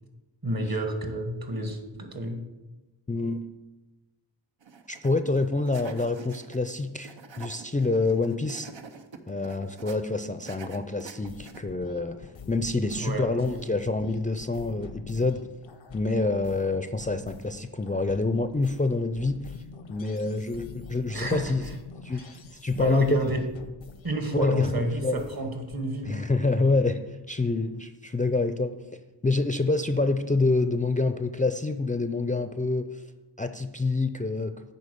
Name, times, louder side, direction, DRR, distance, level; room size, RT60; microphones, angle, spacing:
voice 1, 0.4-2.5 12.9-13.7 21.1-21.7 22.1-22.3 22.7-23.5 24.0-26.3, right 2 dB, 50° right, 5 dB, 1.5 m, -30 dB
voice 2, 3.1-3.5 4.9-8.7 9.3-15.4 15.9-19.5 19.9-21.6 22.0-23.3 24.3-25.2 26.0-27.0 27.3-28.7 29.2-33.0 33.4-34.5, left 3 dB, 20° left, 8 dB, 0.4 m, -27 dB
sound 1, 4.6-5.1 5.4-6.7 7.0-10.0 10.4-11.7, right 5 dB, 80° right, 0.8 m, -46 dB
sound 2, 11.2-25.8, left 5 dB, 85° left, 0.8 m, -46 dB
9.9 x 4.0 x 6.7 m, 1.1 s
wide cardioid pair, 60°, 45 cm